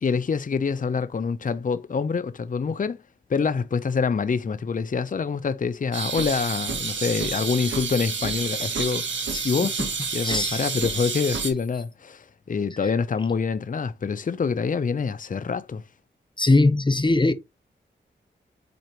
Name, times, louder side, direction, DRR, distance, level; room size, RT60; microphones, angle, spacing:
voice 1, 0.0-3.0 3.3-9.8 10.1-15.8, left 5 dB, 45° left, 0.7 m, -26 dB
sound 1, 5.9-11.5, right 5 dB, 75° right, 1.9 m, -29 dB
voice 2, 9.3-9.9 10.2-10.6 16.4-17.3, left 2 dB, 25° left, 1.1 m, -21 dB
8.0 x 4.4 x 3.0 m
cardioid pair, 45°, 19 cm